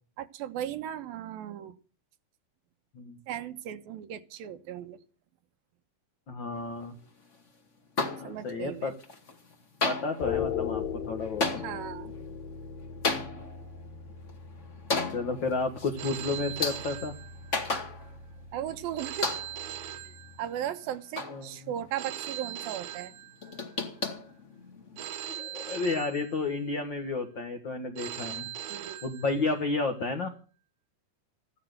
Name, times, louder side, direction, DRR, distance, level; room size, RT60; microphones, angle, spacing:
voice 1, 0.2-1.8 3.3-5.0 8.2-8.9 11.5-12.1 18.5-19.3 19.9-23.1 28.7-29.1, right 10 dB, 85° right, 2.9 m, -37 dB
voice 2, 6.3-6.9 8.2-8.9 9.8-11.6 15.1-17.1 21.3-21.5 25.3-28.5 29.0-30.3, left 3 dB, 50° left, 1.5 m, -31 dB
sound 1, 8.0-8.7 9.0-9.5 9.8-18.4 18.7-18.8 19.2-19.8 20.2-22.0 22.3-22.7 23.1-25.0, left 3 dB, 30° left, 1.6 m, -35 dB
sound 2, 10.2-20.4, left 8 dB, 75° left, 3.4 m, -39 dB
Telephone, 16.0-17.8 19.0-20.8 22.0-23.8 25.0-26.8 28.0-29.8, right 11 dB, 70° right, 2.1 m, -41 dB
15.0 x 12.0 x 6.7 m
omnidirectional pair, 4.1 m